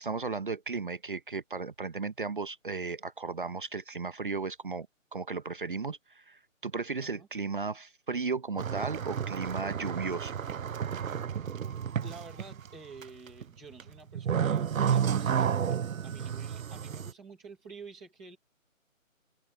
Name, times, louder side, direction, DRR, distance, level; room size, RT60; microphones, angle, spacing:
voice 1, 0.0-4.9 5.1-10.4, right 4 dB, 40° right, 0.9 m, -35 dB
sound 1, 8.6-12.7 13.0-13.4 13.8-17.1, right 8 dB, 80° right, 0.7 m, -31 dB
voice 2, 12.0-18.4, right 3 dB, ahead, 0.9 m, -49 dB
open air
hypercardioid pair, 170°, 40 cm